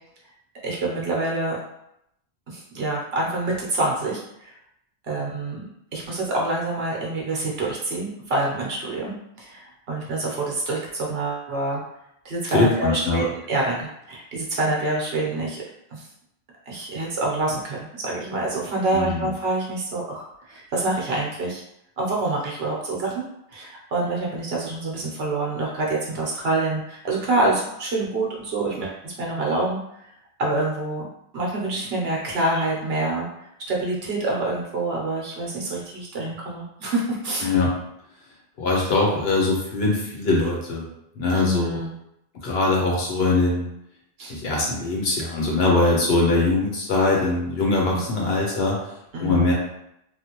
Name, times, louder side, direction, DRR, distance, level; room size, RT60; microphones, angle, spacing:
voice 1, 0.6-1.6 2.5-4.5 5.1-5.6 5.9-11.8 12.2-15.6 15.9-16.0 16.7-21.6 22.0-23.2 23.5-29.8 30.4-31.1 31.3-37.5 41.3-41.9 44.2-44.3 47.9-48.3 49.1-49.4, right 2 dB, 65° right, -2 dB, 0.9 m, -26 dB
voice 2, 12.5-13.2 18.9-19.3 37.4-37.8 38.6-40.9 41.1-41.8 42.4-43.7 44.3-48.9 49.2-49.5, left 3 dB, 65° left, -2 dB, 1.1 m, -22 dB
3.3 x 2.4 x 2.8 m, 0.79 s
omnidirectional pair, 1.1 m